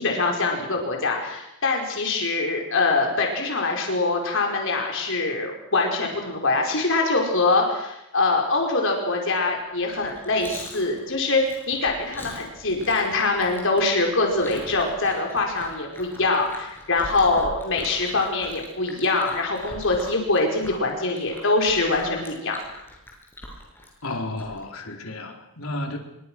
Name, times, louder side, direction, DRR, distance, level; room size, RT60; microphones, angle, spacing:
voice 1, 0.0-22.6, left 3 dB, 60° left, 1 dB, 5.2 m, -24 dB
Chewing mastication, 9.8-24.6, left 1 dB, 10° left, 7.6 m, -42 dB
voice 2, 24.0-26.0, left 2 dB, 75° left, 3 dB, 4.5 m, -32 dB
28.0 x 24.0 x 6.4 m, 0.85 s
head